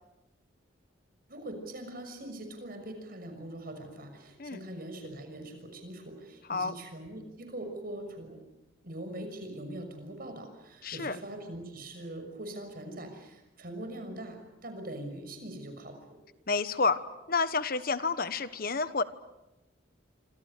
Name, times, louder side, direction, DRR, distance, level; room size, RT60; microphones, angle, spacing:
voice 1, 1.3-8.4 8.8-16.2, right 1 dB, 50° right, 6 dB, 6.3 m, -42 dB
voice 2, 10.8-11.2 16.5-17.0 17.3-19.0, left 4 dB, 50° left, 12 dB, 1.3 m, -29 dB
27.5 x 26.5 x 6.7 m, 0.93 s
head